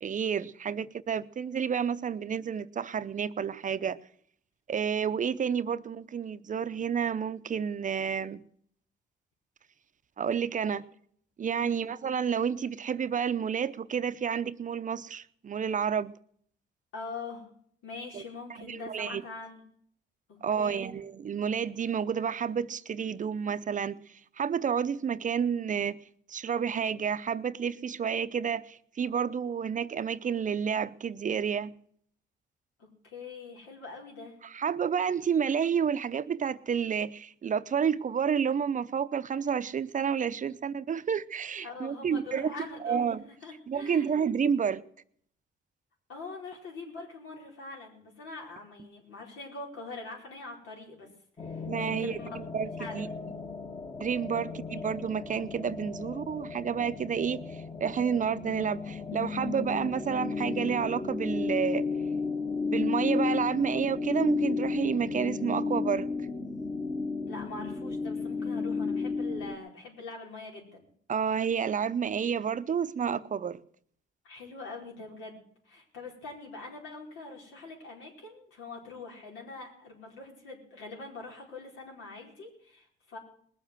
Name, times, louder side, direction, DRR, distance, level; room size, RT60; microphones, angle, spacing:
voice 1, 0.0-4.0 4.7-8.4 10.2-10.8 11.4-16.1 18.1-18.2 18.7-19.2 20.4-24.0 24.4-26.0 26.3-31.7 34.4-42.6 42.8-43.2 43.7-44.8 51.7-53.1 54.0-61.8 62.7-66.1 71.1-73.6, right 7 dB, 40° right, 0.6 m, -30 dB
voice 2, 16.9-17.5 17.8-19.6 20.3-20.9 33.0-34.3 41.6-43.1 43.4-44.1 46.1-51.1 51.4-52.3 52.8-53.0 54.3-54.4 54.7-54.8 67.3-70.9 74.2-83.2, left 3 dB, 85° left, 4.8 m, -43 dB
sound 1, 51.4-69.6, left 4 dB, 30° left, 1.5 m, -33 dB
20.0 x 7.4 x 7.9 m
cardioid pair, 90°, 20 cm